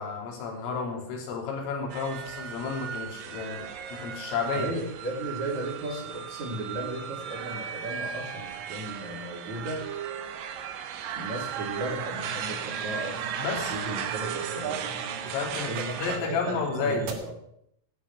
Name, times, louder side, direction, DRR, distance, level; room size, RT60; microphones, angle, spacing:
voice 1, 0.0-4.7 13.4-13.7 15.2-17.1, left 4 dB, 80° left, 2 dB, 5.5 m, -32 dB
sound 1, 1.9-16.2, right 8 dB, 90° right, 1.9 m, -36 dB
voice 2, 4.5-9.9 11.2-13.2 13.5-14.8 15.6-17.3, right 1 dB, 40° right, 0 dB, 3.7 m, -35 dB
sound 2, 12.1-17.1, right 4 dB, 65° right, 3.8 m, -43 dB
16.5 x 10.5 x 5.9 m, 0.73 s
omnidirectional pair, 5.8 m